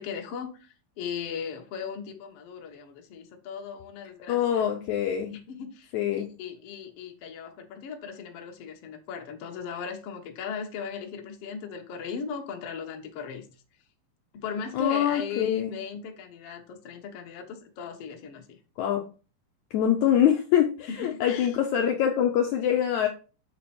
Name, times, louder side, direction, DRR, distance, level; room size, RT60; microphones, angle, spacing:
voice 1, 0.0-4.7 5.3-5.9 6.4-13.5 14.3-18.6 20.9-21.5, left 6 dB, 65° left, 1.5 m, -37 dB
voice 2, 4.3-5.3 5.9-6.3 14.7-15.7 18.8-19.0 19.7-23.1, left 9 dB, 85° left, 1.6 m, -24 dB
8.3 x 4.6 x 4.3 m
omnidirectional pair, 4.3 m